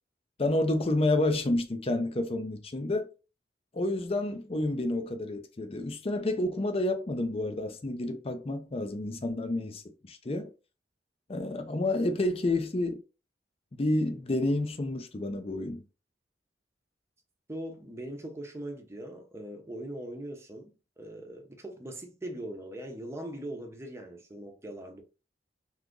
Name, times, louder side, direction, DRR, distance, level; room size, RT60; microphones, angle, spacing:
voice 1, 0.4-3.1 3.7-10.5 11.3-13.0 13.7-15.8, left 2 dB, 35° left, 0.5 m, -29 dB
voice 2, 17.5-25.0, right 1 dB, 15° right, 0.6 m, -41 dB
2.9 x 2.4 x 3.6 m
head